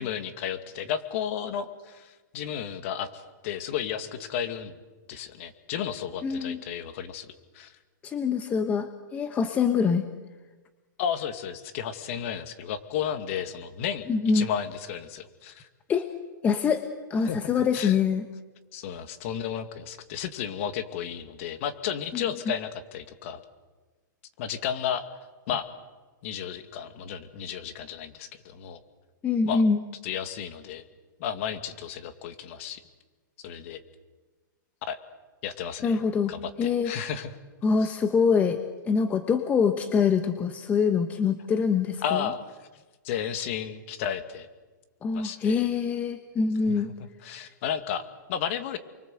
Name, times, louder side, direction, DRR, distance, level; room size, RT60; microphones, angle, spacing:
voice 1, 0.0-4.8 5.1-7.8 11.0-14.1 14.3-15.7 17.2-18.0 18.7-23.4 24.4-25.0 25.5-25.7 26.2-28.8 29.4-29.6 30.0-30.8 31.2-32.8 33.4-33.8 34.8-35.0 35.4-36.0 36.3-37.3 37.8-37.9 42.0-42.6 43.0-44.5 45.1-45.7 46.7-46.8 47.2-48.0 48.3-48.8, left 8 dB, 40° left, 9 dB, 2.3 m, -33 dB
voice 2, 6.2-6.6 8.0-10.0 14.1-14.5 15.9-16.1 16.4-18.2 22.1-22.2 29.2-29.8 35.8-36.3 36.6-36.9 37.6-38.6 38.8-42.3 45.0-46.9, left 5 dB, 15° left, 8 dB, 1.1 m, -24 dB
29.5 x 23.5 x 8.0 m, 1.3 s
hypercardioid pair, 160°, 11 cm